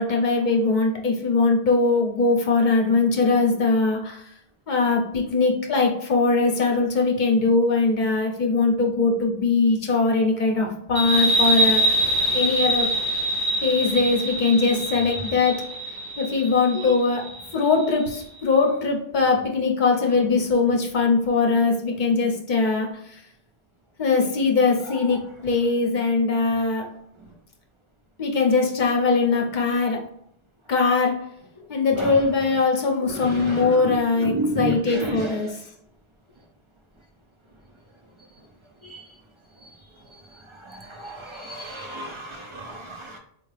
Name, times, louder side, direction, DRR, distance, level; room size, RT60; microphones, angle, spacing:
voice 1, 0.0-4.2 4.7-12.0 12.3-12.9 13.6-15.6 16.2-17.3 17.5-22.9 24.0-26.9 28.2-30.0 30.7-31.3 31.7-35.6, left 4 dB, 50° left, 2 dB, 0.8 m, -21 dB
sound 1, 11.0-18.2, right 1 dB, 60° right, 1.0 m, -24 dB
voice 2, 33.3-33.7 34.2-35.3 38.9-39.0 40.7-43.2, right 2 dB, 40° right, 1 dB, 0.5 m, -31 dB
4.4 x 2.4 x 3.2 m, 0.71 s
omnidirectional pair, 1.1 m